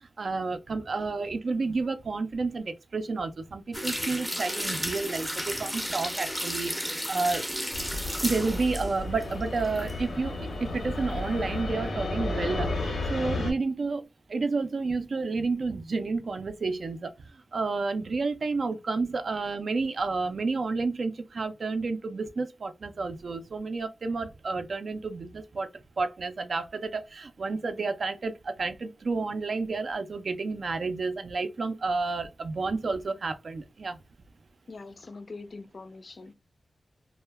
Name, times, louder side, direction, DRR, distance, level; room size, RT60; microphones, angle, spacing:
voice 1, 0.2-7.4 8.2-17.1 17.5-25.7 26.0-34.0, right 3 dB, 60° right, 0.4 m, -30 dB
sound 1, 3.7-10.0 10.3-10.4, equal, 5° right, 0.5 m, -33 dB
Fixed-wing aircraft airplane, 7.7-13.5, left 2 dB, 85° left, 0.7 m, -32 dB
voice 2, 34.7-36.3, left 3 dB, 50° left, 0.4 m, -43 dB
2.2 x 2.0 x 3.3 m
wide cardioid pair, 120°, 0 cm